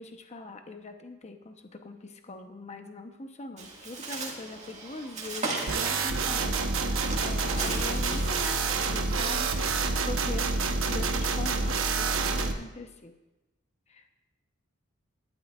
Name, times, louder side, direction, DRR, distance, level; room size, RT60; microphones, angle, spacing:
voice 1, 0.0-6.5 6.9-9.8 10.0-13.1 13.9-14.3, left 3 dB, 35° left, 6 dB, 0.9 m, -42 dB
Bird, 3.6-8.7, right 3 dB, 35° right, 1.9 m, -37 dB
sound 1, 5.7-12.5, right 4 dB, 80° right, 1.0 m, -28 dB
18.0 x 12.0 x 2.4 m, 1.0 s
head